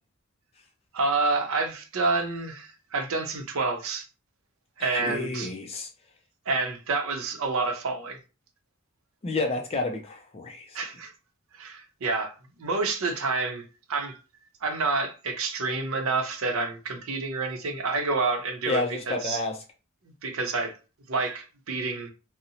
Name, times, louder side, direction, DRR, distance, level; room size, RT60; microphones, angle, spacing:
voice 1, 0.9-4.1 4.8-5.5 6.5-8.2 10.7-11.1 11.5-13.6 13.9-14.2 14.6-19.4 20.2-20.8 21.1-22.1, right 3 dB, 80° right, 0.6 m, -28 dB
voice 2, 4.8-5.9 9.2-10.8 18.7-19.6, left 3 dB, 30° left, 0.3 m, -30 dB
2.7 x 2.0 x 2.6 m
head